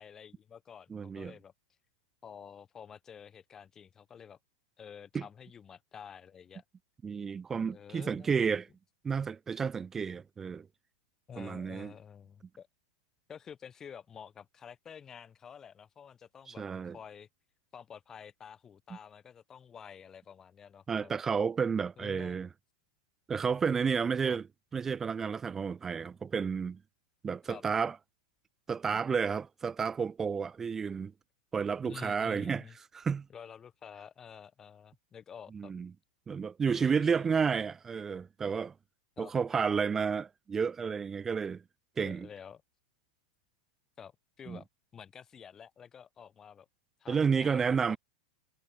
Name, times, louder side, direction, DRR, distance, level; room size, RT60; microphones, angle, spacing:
voice 1, 0.0-1.5 2.2-4.4 4.8-6.6 7.7-8.5 11.3-12.7 13.3-17.3 17.7-21.1 22.0-22.4 24.2-24.4 27.5-27.6 31.8-32.8 33.3-35.7 36.7-37.3 39.2-39.3 42.0-42.6 44.0-44.1 44.4-44.7 44.9-46.7 47.0-48.0, left 7 dB, 15° left, 2.1 m, -50 dB
voice 2, 0.9-1.3 5.1-5.2 7.0-8.7 9.0-10.7 11.4-11.9 16.5-17.0 20.9-22.5 23.3-24.5 24.7-26.8 27.2-28.0 28.7-31.1 31.5-32.6 32.9-33.3 35.5-35.9 36.3-38.7 39.2-41.6 42.0-42.3 44.5-44.6 47.1-48.0, right 6 dB, 10° right, 0.3 m, -31 dB
supercardioid pair, 175°, 3 cm